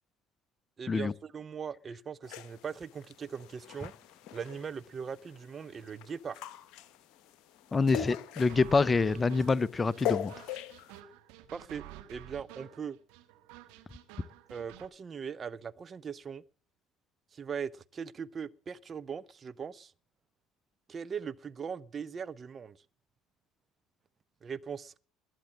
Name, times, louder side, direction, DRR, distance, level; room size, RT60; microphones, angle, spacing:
voice 1, 0.8-3.9 4.3-6.4 11.5-11.8 12.1-13.0 14.5-16.4 17.3-19.9 20.9-22.8 24.4-25.0, right 6 dB, 35° right, 0.6 m, -40 dB
sound 1, 2.2-11.0, left 10 dB, 60° left, 1.0 m, -41 dB
voice 2, 7.7-10.3, left 4 dB, 25° left, 0.7 m, -26 dB
sound 2, 8.5-14.9, right 13 dB, 65° right, 1.4 m, -51 dB
20.5 x 7.8 x 7.2 m
figure-of-eight pair, 60°, 0 cm